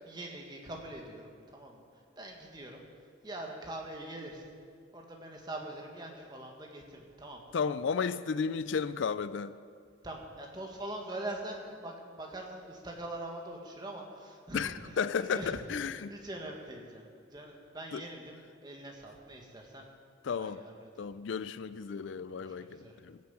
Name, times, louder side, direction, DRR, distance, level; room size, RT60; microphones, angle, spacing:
voice 1, 0.1-2.8 3.2-4.5 4.9-7.4 10.0-15.6 16.1-19.9 20.4-20.9 22.3-23.0, right 1 dB, 20° right, 1 dB, 1.6 m, -43 dB
voice 2, 7.5-9.5 14.5-16.1 17.9-18.0 20.2-20.6 21.0-23.2, left 6 dB, 65° left, 14 dB, 0.4 m, -33 dB
16.5 x 7.3 x 7.5 m, 2.1 s
head